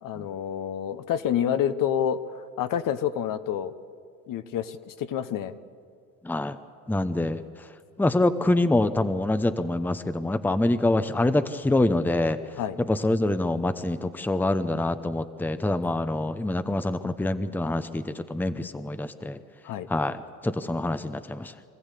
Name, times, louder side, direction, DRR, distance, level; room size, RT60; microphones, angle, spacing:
voice 1, 0.0-2.2 2.6-3.7 4.3-5.5 12.6-12.8 19.6-19.9, left 9 dB, 55° left, 11 dB, 1.1 m, -28 dB
voice 2, 6.2-6.6 6.9-7.4 8.0-12.4 12.9-19.4 19.9-20.2 20.4-21.5, left 2 dB, 5° left, 11 dB, 0.9 m, -25 dB
25.0 x 15.0 x 8.4 m, 2.3 s
supercardioid pair, 85°, 40 cm